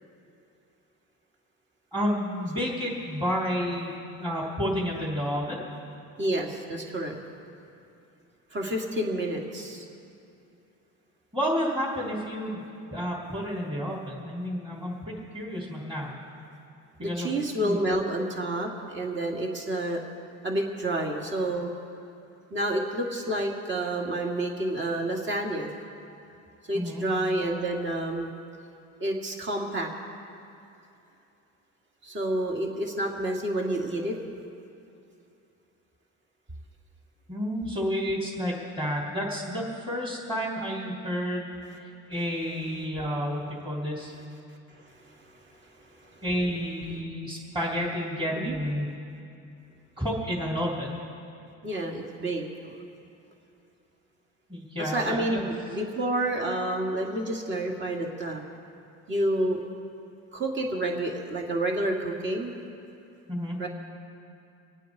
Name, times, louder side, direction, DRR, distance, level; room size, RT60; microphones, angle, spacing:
voice 1, 1.9-5.6 11.3-12.6 12.9-16.1 17.0-17.3 17.6-18.0 26.7-27.0 37.3-41.5 41.8-44.1 46.2-48.8 50.0-51.0 54.5-55.4 63.3-63.6, equal, 15° right, -8 dB, 3.2 m, -30 dB
voice 2, 6.2-7.2 8.5-9.8 17.0-20.0 20.4-21.7 22.5-25.7 26.7-28.3 29.0-29.9 32.0-34.2 44.8-45.1 46.0-46.2 48.3-48.6 51.6-52.7 54.8-58.4 59.1-59.6 60.3-62.5 63.6-63.7, right 1 dB, 35° right, 1 dB, 2.2 m, -29 dB
26.5 x 9.1 x 4.8 m, 2.7 s
cardioid pair, 115°, 32 cm